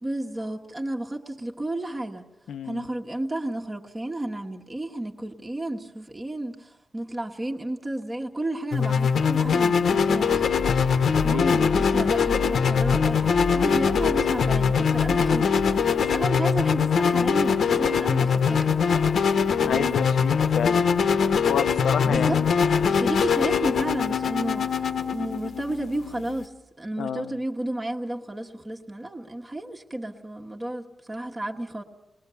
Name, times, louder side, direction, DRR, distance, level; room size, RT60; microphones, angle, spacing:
voice 1, 0.0-2.3 2.6-10.6 11.2-18.8 19.6-20.0 22.0-31.8, right 1 dB, 20° right, 1.5 m, -32 dB
voice 2, 2.5-2.8 11.3-11.6 19.6-20.9 21.5-22.5 27.0-27.4, left 7 dB, 85° left, 0.8 m, -29 dB
sound 1, 8.7-26.5, left 6 dB, 65° left, 1.1 m, -22 dB
sound 2, 10.3-17.5, left 2 dB, 40° left, 1.0 m, -35 dB
29.0 x 20.5 x 7.0 m
wide cardioid pair, 135°, 0 cm